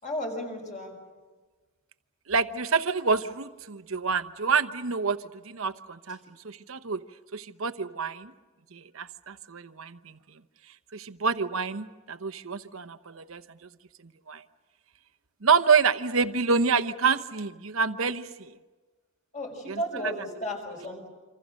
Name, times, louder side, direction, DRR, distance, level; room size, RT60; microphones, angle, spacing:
voice 1, 0.0-0.9 19.3-21.1, equal, 35° left, 2 dB, 5.8 m, -34 dB
voice 2, 2.3-5.2 5.4-7.0 7.3-8.3 8.7-10.2 10.9-13.4 14.3-14.4 15.4-18.5 19.7-20.1, right 5 dB, 65° right, 11 dB, 0.9 m, -27 dB
27.5 x 26.0 x 6.4 m, 1.3 s
head